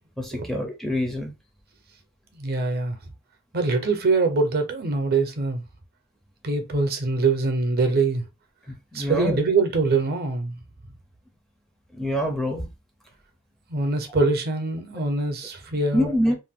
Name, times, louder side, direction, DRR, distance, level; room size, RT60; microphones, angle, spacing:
voice 1, 0.2-1.3 8.7-9.4 11.9-12.7 15.9-16.4, equal, ahead, 0.4 m, -25 dB
voice 2, 2.4-3.0 3.5-5.6 6.4-8.3 8.9-10.6 13.7-16.1, right 3 dB, 45° right, 0.6 m, -23 dB
2.5 x 2.1 x 3.5 m
head